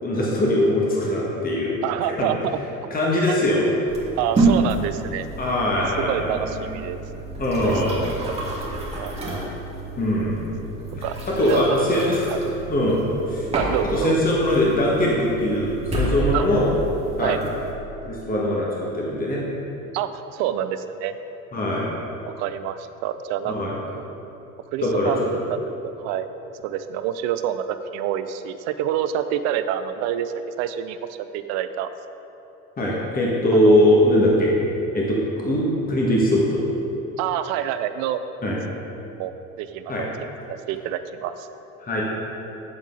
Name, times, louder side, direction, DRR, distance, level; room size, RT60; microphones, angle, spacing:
voice 1, 0.0-1.7 2.2-2.3 2.9-3.6 5.4-6.7 7.4-8.1 9.2-9.4 10.0-10.5 11.0-11.1 11.4-12.2 12.7-13.0 13.3-13.5 13.9-16.7 17.2-17.3 18.0-19.4 21.5-21.9 23.4-23.7 24.8-25.3 32.8-34.5 34.9-36.6 38.4-38.6 39.9-40.0 41.8-42.0, left 1 dB, 20° left, -4 dB, 1.5 m, -21 dB
voice 2, 1.8-2.6 3.3-3.4 4.2-5.3 5.7-7.0 7.6-7.8 8.2-9.1 11.0-11.1 11.4-11.9 12.3-12.5 13.5-14.2 16.3-16.5 17.2-17.4 19.9-21.1 22.4-23.6 23.9-24.0 24.7-25.6 25.8-26.3 26.6-31.0 31.3-31.9 33.6-33.8 37.2-38.2 39.0-39.3 39.6-40.1 40.5-41.5, right 10 dB, 40° right, 11 dB, 0.5 m, -27 dB
sound 1, 3.9-17.7, right 2 dB, 15° right, 1.8 m, -29 dB
8.5 x 7.3 x 3.9 m, 3.0 s
figure-of-eight pair, 65°, 41 cm